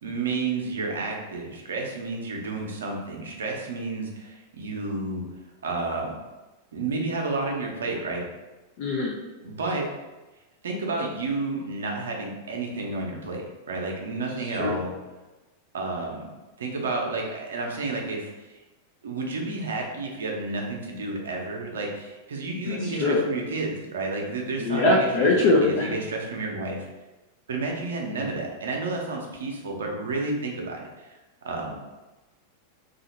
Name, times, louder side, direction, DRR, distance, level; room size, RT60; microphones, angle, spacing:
voice 1, 0.0-5.2 5.6-6.1 6.7-8.2 9.4-9.9 10.6-14.9 15.7-16.3 16.6-18.3 19.0-26.9 27.5-31.1 31.4-31.7, right 3 dB, 65° right, 0 dB, 0.7 m, -31 dB
voice 2, 8.8-9.1 14.5-14.7 22.7-23.2 24.6-25.9, left 2 dB, 50° left, -1 dB, 0.6 m, -22 dB
2.8 x 2.5 x 4.0 m, 1.1 s
figure-of-eight pair, 90°, 0 cm